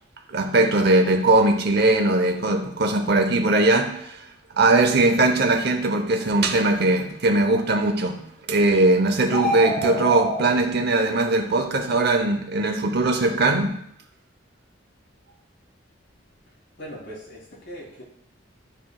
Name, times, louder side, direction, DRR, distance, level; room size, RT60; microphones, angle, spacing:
voice 1, 0.3-4.2 4.6-8.2 8.5-13.8, right 2 dB, 55° right, 0.8 m, -20 dB
sound 1, 9.3-10.4, equal, 45° left, 2.1 m, -25 dB
voice 2, 16.8-18.0, equal, 65° left, 2.5 m, -39 dB
12.5 x 4.6 x 2.4 m
head